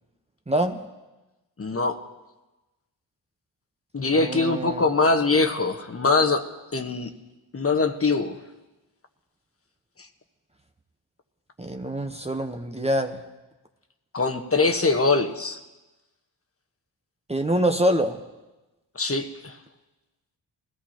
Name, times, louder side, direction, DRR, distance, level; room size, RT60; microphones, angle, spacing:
voice 1, 0.5-0.8 4.1-4.8 11.6-13.2 17.3-18.2, right 1 dB, 15° right, 4 dB, 0.9 m, -25 dB
voice 2, 1.6-2.0 3.9-6.4 6.7-7.1 7.5-8.4 14.1-15.6 18.9-19.6, left 3 dB, 30° left, 5 dB, 1.2 m, -23 dB
20.5 x 14.0 x 2.9 m, 1.1 s
cardioid pair, 55°, 44 cm